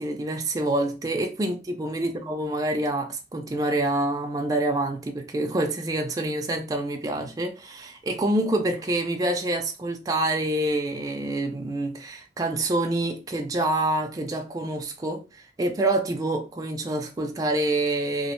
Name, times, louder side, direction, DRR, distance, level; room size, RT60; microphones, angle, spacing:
voice 1, 0.0-18.3, right 1 dB, 20° right, 0.3 m, -27 dB
2.6 x 2.1 x 2.9 m
head